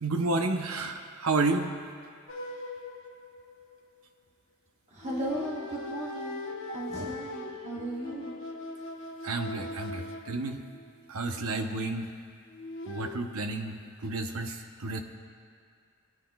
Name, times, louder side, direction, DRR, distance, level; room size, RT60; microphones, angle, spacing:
voice 1, 0.0-1.7 9.2-10.6 11.1-12.1 12.9-15.0, right 3 dB, 70° right, 5 dB, 0.8 m, -31 dB
sound 1, 2.3-3.9 5.0-11.0 12.5-13.2, left 2 dB, 60° left, 1.0 m, -40 dB
voice 2, 4.9-8.4, right 1 dB, 30° right, -3 dB, 1.0 m, -36 dB
21.0 x 9.8 x 2.3 m, 2.2 s
head